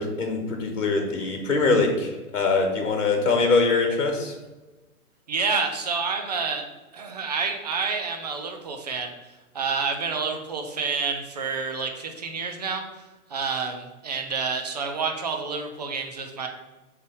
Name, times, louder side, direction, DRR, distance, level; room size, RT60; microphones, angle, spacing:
voice 1, 0.0-4.3, left 3 dB, 55° left, 3 dB, 1.3 m, -23 dB
voice 2, 5.3-6.7 6.9-9.1 9.5-12.8 13.3-16.5, right 5 dB, 30° right, 4 dB, 0.5 m, -28 dB
6.5 x 3.3 x 4.7 m, 1.1 s
figure-of-eight pair, 125°, 45 cm